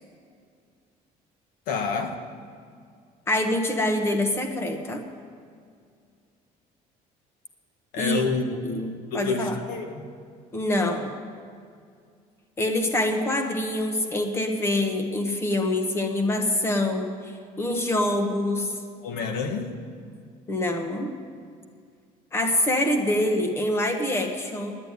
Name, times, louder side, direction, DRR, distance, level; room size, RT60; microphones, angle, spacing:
voice 1, 1.7-2.2 7.9-8.4 9.1-10.1 19.0-19.7, left 5 dB, 75° left, 6 dB, 1.5 m, -28 dB
voice 2, 3.3-5.0 8.0-8.2 8.6-9.6 10.5-11.1 12.6-18.8 20.5-21.1 22.3-24.8, left 1 dB, 15° left, 5 dB, 1.1 m, -25 dB
11.0 x 8.9 x 9.5 m, 2.2 s
cardioid pair, 180°, 15 cm